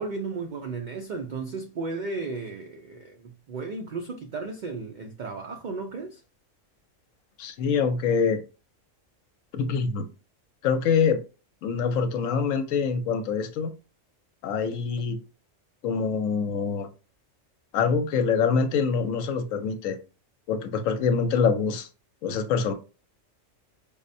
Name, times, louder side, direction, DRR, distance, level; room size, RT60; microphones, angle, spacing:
voice 1, 0.0-6.2, right 3 dB, 80° right, 0.4 m, -34 dB
voice 2, 7.4-8.4 9.5-10.1 10.6-11.2 11.6-13.7 14.4-15.2 15.8-16.9 17.7-20.0 20.5-21.9 22.2-22.7, left 5 dB, 80° left, 1.0 m, -25 dB
5.1 x 2.1 x 2.6 m
omnidirectional pair, 1.3 m